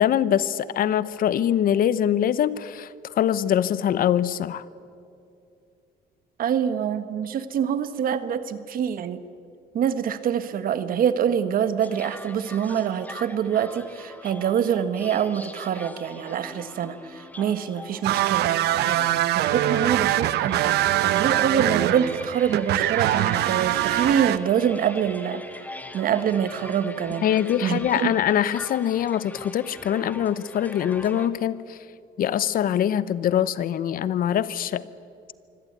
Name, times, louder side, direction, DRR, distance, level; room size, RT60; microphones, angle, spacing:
voice 1, 0.0-2.9 3.1-4.6 27.2-31.8 32.2-34.8, left 10 dB, 55° left, 17 dB, 0.9 m, -23 dB
voice 2, 6.4-9.2 9.7-19.0 19.3-25.4 25.9-27.3 27.6-28.1, right 8 dB, 55° right, 12 dB, 1.4 m, -25 dB
sound 1, 11.8-31.3, left 1 dB, 10° left, 1.6 m, -42 dB
sound 2, 18.0-24.4, right 13 dB, 75° right, 0.9 m, -23 dB
24.5 x 16.5 x 9.5 m, 2.5 s
cardioid pair, 110°, 17 cm